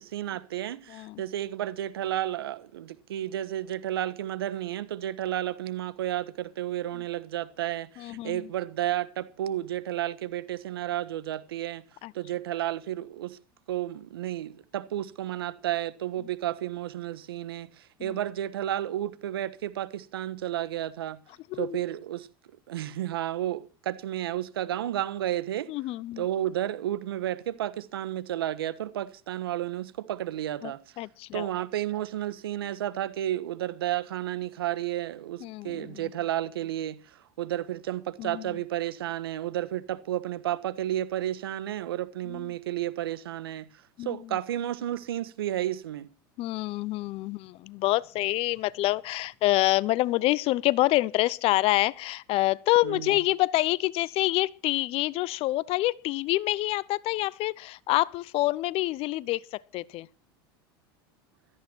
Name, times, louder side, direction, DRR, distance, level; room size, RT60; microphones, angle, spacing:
voice 1, 0.0-11.8 12.1-13.4 13.7-21.2 21.6-22.3 22.7-25.7 26.2-30.8 31.3-43.7 44.0-46.1 52.8-53.2, right 12 dB, 90° right, 1.4 m, -32 dB
voice 2, 0.9-1.2 8.0-8.5 12.0-12.1 18.0-18.2 21.5-21.8 25.7-26.2 30.6-31.5 35.4-36.1 38.2-38.5 42.2-42.5 44.0-44.4 46.4-60.1, left 18 dB, 55° left, 0.8 m, -27 dB
17.0 x 14.0 x 4.6 m
hypercardioid pair, 100°, 12 cm